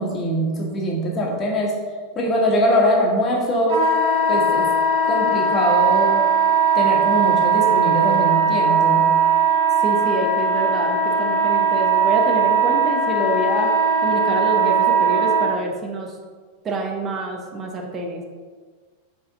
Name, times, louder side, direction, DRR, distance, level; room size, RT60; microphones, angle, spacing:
voice 1, 0.0-1.7 2.1-3.8 4.3-4.7 5.0-6.2 6.7-9.1, equal, 30° left, -1 dB, 1.5 m, -22 dB
Wind instrument woodwind instrument, 3.7-15.5, right 4 dB, 50° right, 1.2 m, -19 dB
voice 2, 9.8-13.7 14.0-16.2 16.6-18.2, right 2 dB, 25° right, 1 dB, 1.0 m, -26 dB
5.2 x 5.1 x 3.9 m, 1.5 s
figure-of-eight pair, 90°, 0 cm